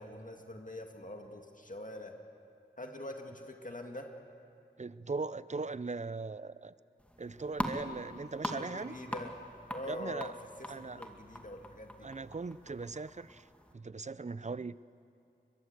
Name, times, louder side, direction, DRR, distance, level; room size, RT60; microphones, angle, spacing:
voice 1, 0.0-2.2 2.8-4.1 8.4-9.3 9.7-10.3 10.6-12.1, left 1 dB, 45° left, 3 dB, 2.1 m, -44 dB
voice 2, 4.8-6.7 7.2-9.2 9.9-10.3 10.7-11.0 12.0-14.7, right 4 dB, 40° right, 17 dB, 0.6 m, -39 dB
sound 1, 7.0-13.7, equal, 5° left, 2.3 m, -43 dB
22.5 x 21.5 x 8.1 m, 2.5 s
cardioid pair, 40°, 19 cm